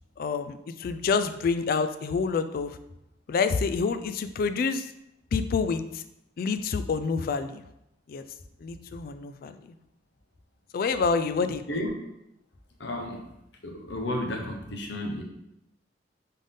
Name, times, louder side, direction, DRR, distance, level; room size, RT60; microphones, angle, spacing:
voice 1, 0.2-2.8 3.3-4.9 5.3-6.0 6.4-7.6 8.1-8.2 8.6-9.7 10.7-11.6, left 5 dB, 50° left, 11 dB, 0.3 m, -27 dB
voice 2, 12.8-13.2 13.6-15.2, left 1 dB, 65° left, 1 dB, 0.8 m, -32 dB
3.8 x 3.7 x 3.6 m, 0.83 s
head